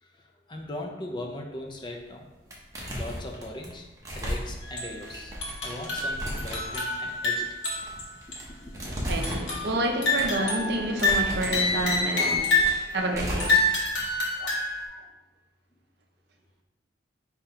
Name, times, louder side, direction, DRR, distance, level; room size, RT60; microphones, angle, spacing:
voice 1, 0.0-2.3 3.0-3.9 4.1-5.3 5.6-7.5, left 1 dB, 25° left, 1 dB, 0.4 m, -39 dB
sound 1, 1.9-2.2 2.5-14.2, equal, 15° right, 0.7 m, -36 dB
sound 2, 4.6-4.9 5.4-8.0 8.3-8.4 9.2-9.7 10.0-12.9 13.4-14.9, left 2 dB, 90° left, 1.1 m, -26 dB
voice 2, 9.1-12.6 12.9-13.6 14.4-14.5 14.8-14.9, right 1 dB, 60° right, 3 dB, 0.5 m, -29 dB
3.8 x 2.8 x 4.3 m, 1.1 s
head